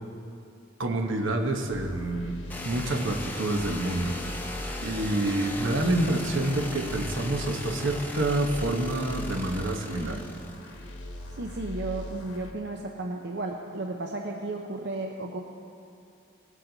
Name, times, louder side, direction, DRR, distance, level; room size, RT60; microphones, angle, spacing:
voice 1, 0.8-2.4 2.6-4.2 4.8-10.2, right 1 dB, 75° right, 4 dB, 1.0 m, -27 dB
sound 1, 1.7-12.5, left 1 dB, 65° left, 1.1 m, -41 dB
sound 2, 2.5-11.2, left 1 dB, 10° left, 0.7 m, -38 dB
voice 2, 11.3-15.4, right 2 dB, 60° right, 1 dB, 0.6 m, -34 dB
18.0 x 7.5 x 3.9 m, 2.6 s
head